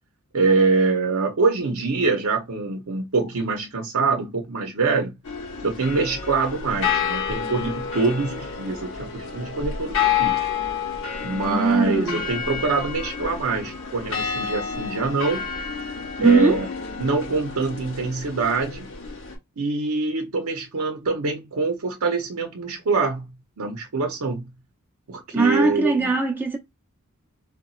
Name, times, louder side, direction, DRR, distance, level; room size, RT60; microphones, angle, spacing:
voice 1, 0.3-5.1 5.6-10.4 11.2-15.4 16.2-16.7 17.0-18.9 19.6-23.3 23.6-24.5 25.1-26.1, right 3 dB, 80° right, 0.7 m, -24 dB
sound 1, 5.3-19.4, left 7 dB, 65° left, 0.9 m, -29 dB
voice 2, 11.4-12.3 16.2-16.6 25.3-26.6, right 3 dB, 10° right, 0.7 m, -20 dB
4.0 x 2.2 x 2.3 m
head